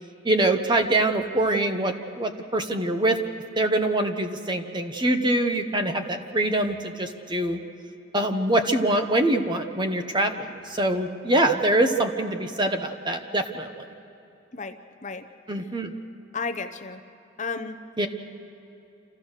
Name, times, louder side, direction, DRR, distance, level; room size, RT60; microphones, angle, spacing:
voice 1, 0.2-3.2 3.6-7.6 8.1-13.8 15.5-15.9 18.0-18.1, right 1 dB, 25° right, 6 dB, 1.0 m, -24 dB
voice 2, 14.5-15.3 16.3-17.0 17.4-17.8, left 4 dB, 40° left, 9 dB, 0.7 m, -33 dB
27.0 x 15.0 x 6.5 m, 2.9 s
head